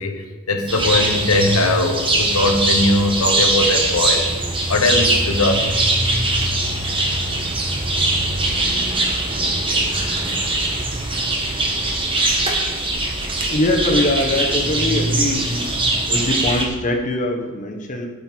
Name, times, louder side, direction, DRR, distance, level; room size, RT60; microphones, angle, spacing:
voice 1, 0.0-4.2 4.7-5.7 9.9-10.4, left 2 dB, 85° left, 4 dB, 1.2 m, -20 dB
sound 1, 0.7-16.7, right 2 dB, 25° right, 1.3 m, -21 dB
voice 2, 13.5-15.4 16.1-18.1, left 1 dB, 35° left, 2 dB, 1.2 m, -22 dB
12.0 x 6.9 x 4.5 m, 1.4 s
head